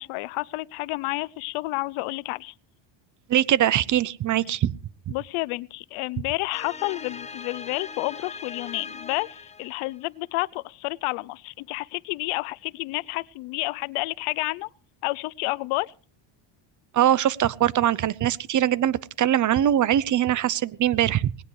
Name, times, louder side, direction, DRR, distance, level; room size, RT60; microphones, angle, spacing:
voice 1, 0.0-2.5 4.5-4.6 5.1-14.7 15.0-15.9, left 22 dB, 80° left, 0.7 m, -30 dB
voice 2, 3.3-4.7 16.9-21.4, right 11 dB, 40° right, 0.6 m, -22 dB
sound 1, 6.5-10.0, left 5 dB, 15° left, 1.1 m, -40 dB
19.0 x 18.0 x 3.2 m
cardioid pair, 120°, 49 cm